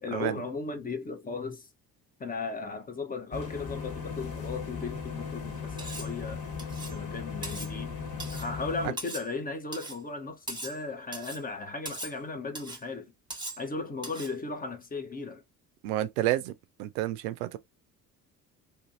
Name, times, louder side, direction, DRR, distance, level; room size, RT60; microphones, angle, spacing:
voice 1, 0.0-1.7 2.2-6.4 6.9-8.0 8.3-13.1 13.6-15.4, left 3 dB, 20° left, 0.6 m, -36 dB
sound 1, 3.3-8.9, left 5 dB, 45° left, 1.3 m, -37 dB
Cutlery silverware, 5.8-6.1 6.6-7.0 7.4-7.7 8.2-8.5 9.0-9.3 9.7-10.0 10.5-10.8 11.1-11.4 11.9-12.2 12.6-12.8 13.3-13.6 14.0-14.3, right 2 dB, 10° right, 1.1 m, -40 dB
voice 2, 15.8-16.5 16.8-17.6, right 14 dB, 65° right, 0.5 m, -29 dB
2.7 x 2.6 x 2.4 m
figure-of-eight pair, 50°, 49 cm